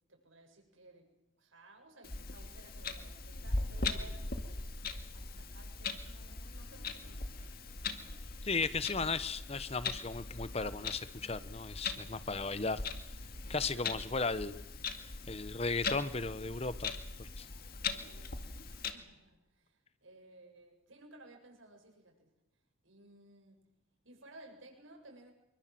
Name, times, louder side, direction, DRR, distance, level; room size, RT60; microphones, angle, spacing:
voice 1, 0.1-4.7 5.1-8.2 13.7-13.9 17.8-18.4 18.7-22.3 22.8-23.6 24.0-25.3, right 2 dB, 85° right, 3 dB, 7.5 m, -58 dB
Clock, 2.0-18.9, left 4 dB, 50° left, 2.1 m, -40 dB
voice 2, 8.4-12.8 13.5-14.6 15.3-16.9 17.2-17.5, left 4 dB, 30° left, 15 dB, 1.0 m, -35 dB
26.0 x 24.0 x 7.8 m, 0.88 s
head